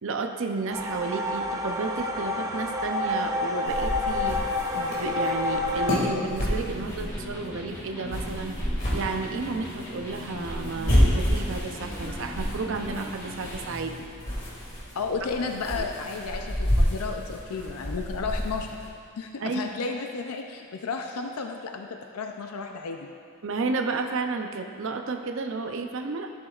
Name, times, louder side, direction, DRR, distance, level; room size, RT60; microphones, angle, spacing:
voice 1, 0.0-4.4 4.7-8.5 8.9-14.0 15.8-15.9 19.4-19.8 23.4-26.3, right 3 dB, 60° right, 5 dB, 0.6 m, -32 dB
sound 1, 0.7-6.0, left 2 dB, 15° right, 0.6 m, -28 dB
sound 2, 3.7-18.9, equal, 40° left, 2.2 m, -30 dB
Electric guitar, 6.7-14.0, left 1 dB, 15° left, 1.0 m, -40 dB
voice 2, 14.9-18.8 19.2-23.1, left 4 dB, 80° left, 3 dB, 0.5 m, -33 dB
13.0 x 7.3 x 2.4 m, 2.3 s
head